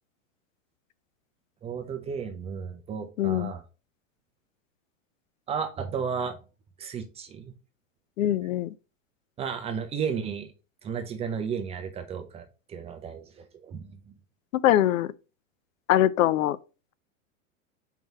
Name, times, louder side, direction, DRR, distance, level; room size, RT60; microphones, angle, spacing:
voice 1, 1.6-3.6 5.5-6.4 6.8-7.5 9.4-10.5 10.8-14.0, right 6 dB, 15° right, 0.5 m, -33 dB
voice 2, 3.2-3.5 8.2-8.7 14.6-15.1 15.9-16.6, left 13 dB, 75° left, 0.6 m, -22 dB
4.6 x 3.8 x 5.3 m
supercardioid pair, 140°, 40 cm